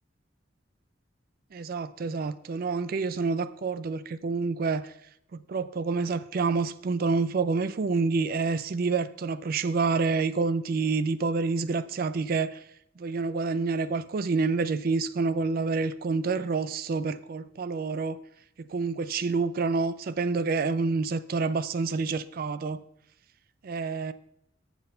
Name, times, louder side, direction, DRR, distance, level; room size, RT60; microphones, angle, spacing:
voice 1, 1.5-4.9 5.3-12.6 13.0-18.2 18.6-22.8 23.6-24.1, right 4 dB, 55° right, 0.4 m, -28 dB
7.6 x 6.1 x 5.5 m
head